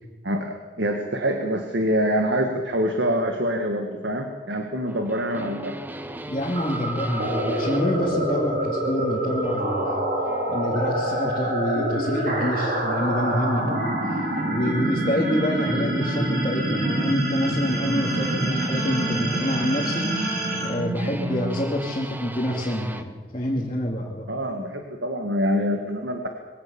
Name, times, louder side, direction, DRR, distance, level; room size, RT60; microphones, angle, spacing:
voice 1, 0.2-5.8 24.3-26.3, equal, 80° right, 4 dB, 1.9 m, -25 dB
sound 1, 4.9-23.1, right 1 dB, 10° right, 1.1 m, -39 dB
voice 2, 6.3-10.1 10.5-13.9 14.5-20.1 20.6-24.3, left 1 dB, 30° left, -3 dB, 2.7 m, -27 dB
sound 2, 6.5-21.7, right 1 dB, 55° right, 4.0 m, -26 dB
22.0 x 17.5 x 7.2 m, 1.3 s
head